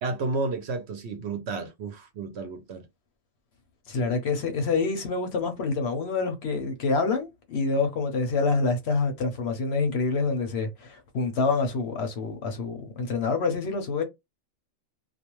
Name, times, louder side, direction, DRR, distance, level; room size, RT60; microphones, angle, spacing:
voice 1, 0.0-2.8, right 3 dB, 65° right, 0.8 m, -31 dB
voice 2, 3.9-14.0, left 4 dB, 60° left, 0.8 m, -27 dB
2.5 x 2.1 x 2.9 m
omnidirectional pair, 1.4 m